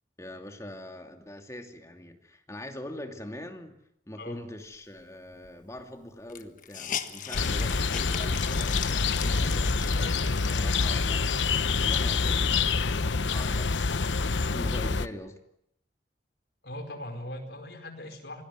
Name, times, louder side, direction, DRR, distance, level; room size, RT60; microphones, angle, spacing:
voice 1, 0.2-3.8 4.1-10.0 10.4-15.4, left 1 dB, 15° left, 5 dB, 2.7 m, -43 dB
Hiss, 5.4-5.5 5.8-5.9 6.3-11.3 11.9-12.0 12.4-13.7, left 8 dB, 45° left, 1.5 m, -39 dB
sound 1, 7.3-15.1, left 4 dB, 90° left, 0.9 m, -26 dB
voice 2, 16.6-18.4, left 1 dB, 65° left, 6 dB, 4.9 m, -40 dB
26.5 x 19.5 x 9.5 m, 0.74 s
head